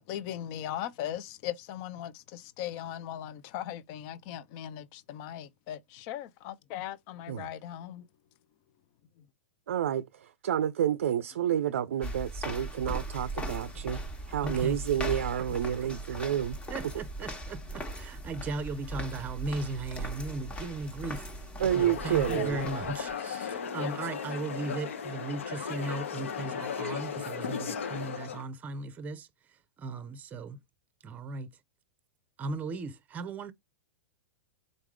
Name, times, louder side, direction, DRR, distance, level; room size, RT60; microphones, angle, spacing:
voice 1, 0.0-8.0, left 11 dB, 45° left, 0.6 m, -39 dB
voice 2, 9.7-14.0 14.3-16.6 21.6-22.6, right 10 dB, 75° right, 0.4 m, -29 dB
sound 1, 12.0-23.2, right 1 dB, 15° left, 1.2 m, -39 dB
voice 3, 14.4-14.8 15.4-15.5 15.8-15.9 16.7-30.6 31.0-31.5 32.4-33.5, right 3 dB, 20° right, 0.7 m, -37 dB
sound 2, 21.7-28.4, left 6 dB, 75° left, 0.9 m, -36 dB
3.9 x 3.5 x 3.2 m
hypercardioid pair, 115°, 7 cm